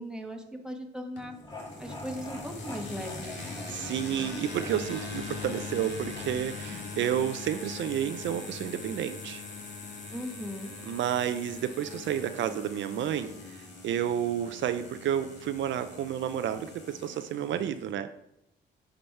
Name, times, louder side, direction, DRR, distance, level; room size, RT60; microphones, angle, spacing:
voice 1, 0.0-1.3 1.8-3.3 10.1-10.7, equal, 5° right, 3 dB, 1.3 m, -38 dB
sound 1, 1.2-17.9, left 3 dB, 60° left, 2.3 m, -41 dB
sound 2, 1.2-7.3, left 1 dB, 20° left, 1.9 m, -46 dB
voice 2, 3.4-9.4 10.9-18.1, right 10 dB, 70° right, 9 dB, 0.5 m, -31 dB
9.7 x 5.1 x 4.5 m, 0.83 s
cardioid pair, 90°, 20 cm